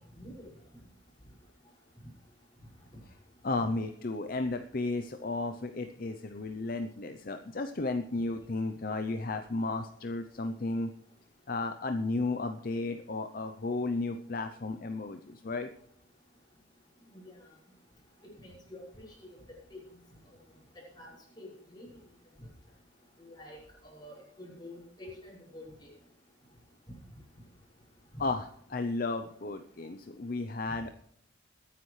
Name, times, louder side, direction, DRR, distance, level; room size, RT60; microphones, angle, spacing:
voice 1, 0.2-0.5 3.6-3.7 17.1-17.3 18.4-19.4 19.7-19.8 21.0-21.1 21.4-21.8 23.3-23.6 23.8-25.9 28.1-28.2 30.7-30.8, left 1 dB, 20° left, -4 dB, 5.9 m, -47 dB
voice 2, 3.4-10.9 11.5-15.7 28.2-30.9, left 3 dB, 50° left, 7 dB, 0.6 m, -34 dB
21.5 x 9.9 x 3.2 m, 0.71 s
head